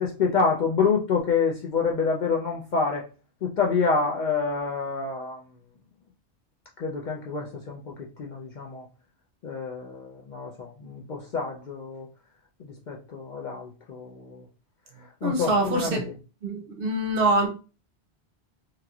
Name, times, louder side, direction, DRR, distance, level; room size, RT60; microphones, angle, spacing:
voice 1, 0.0-3.1 3.4-5.4 6.8-8.8 9.4-12.1 12.6-14.4 15.2-16.2, left 5 dB, 60° left, 0.5 m, -27 dB
voice 2, 15.2-16.0 16.4-17.5, right 2 dB, 60° right, 0.8 m, -24 dB
3.0 x 2.8 x 2.3 m
omnidirectional pair, 1.1 m